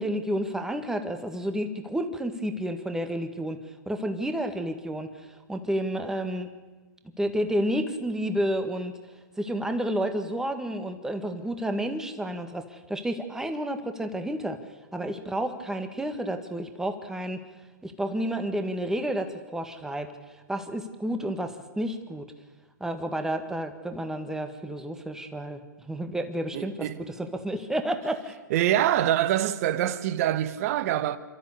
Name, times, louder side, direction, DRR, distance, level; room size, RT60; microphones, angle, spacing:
voice 1, 0.0-3.6 3.9-5.1 5.5-6.5 7.2-9.0 9.4-14.6 14.9-17.4 17.8-20.1 20.5-22.3 22.8-28.4, right 1 dB, 5° right, 1.8 m, -30 dB
voice 2, 26.5-27.0 28.5-31.2, right 12 dB, 50° right, 1.4 m, -25 dB
28.0 x 13.5 x 8.4 m
hypercardioid pair, 120°, 10 cm